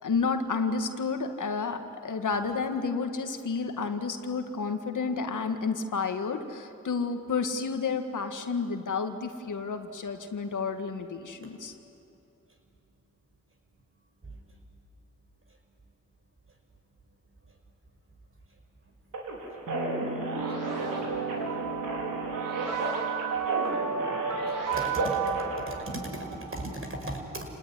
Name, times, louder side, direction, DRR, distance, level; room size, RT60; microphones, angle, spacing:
voice 1, 0.0-11.7, left 4 dB, 70° left, 6 dB, 2.0 m, -31 dB
sound 1, 19.1-25.6, right 2 dB, 80° right, 4.9 m, -34 dB
sound 2, 19.7-26.7, right 6 dB, 65° right, 2.6 m, -33 dB
voice 2, 24.7-25.2 25.7-27.5, right 1 dB, 40° right, 2 dB, 6.0 m, -36 dB
28.5 x 18.5 x 10.0 m, 2.8 s
cardioid pair, 60°, 32 cm